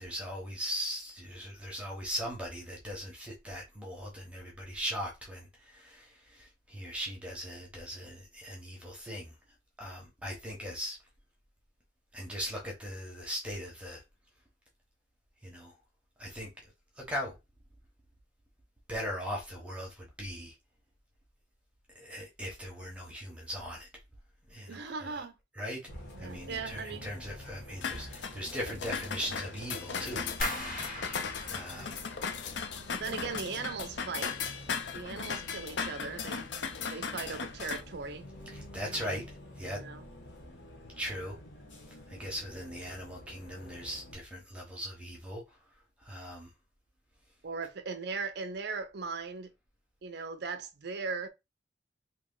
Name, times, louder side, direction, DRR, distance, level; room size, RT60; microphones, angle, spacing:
voice 1, 0.0-9.3 9.8-11.0 12.1-14.0 15.4-15.7 16.2-16.5 17.0-17.4 18.9-20.5 21.9-23.9 24.5-25.2 25.5-25.8 26.2-32.0 38.4-39.3 39.6-39.8 41.0-41.4 41.9-45.6 46.0-46.5, equal, 5° right, 1.0 m, -39 dB
voice 2, 24.7-25.3 26.1-27.1 32.9-34.4 34.9-36.5 36.9-38.3 38.9-39.2 39.7-40.1 47.4-49.5 50.0-51.3, right 4 dB, 60° right, 0.6 m, -38 dB
Bus, 25.9-44.1, left 1 dB, 85° left, 1.2 m, -49 dB
sound 1, 27.8-37.8, left 6 dB, 65° left, 0.5 m, -37 dB
sound 2, 30.4-33.3 33.6-34.3 34.6-35.0 35.4-35.6, left 1 dB, 50° left, 1.8 m, -39 dB
3.0 x 2.9 x 3.7 m
head